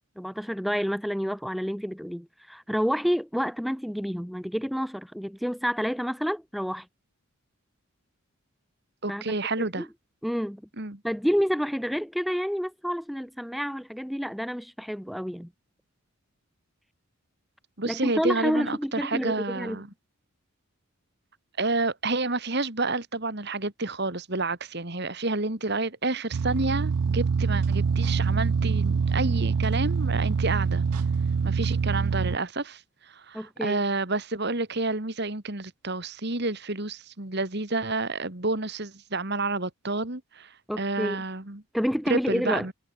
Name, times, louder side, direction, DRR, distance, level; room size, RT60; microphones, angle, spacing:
voice 1, 0.2-6.9 9.1-9.9 10.2-10.6 11.0-15.5 17.8-19.8 33.3-33.8 40.7-41.2 41.7-42.7, equal, ahead, 1.6 m, -29 dB
voice 2, 9.0-9.9 10.8-11.0 17.8-19.9 21.6-30.8 31.4-32.8 33.1-40.5 40.8-41.6 42.1-42.7, right 2 dB, 50° right, 2.2 m, -29 dB
sound 1, 26.3-32.4, right 5 dB, 85° right, 0.5 m, -25 dB
head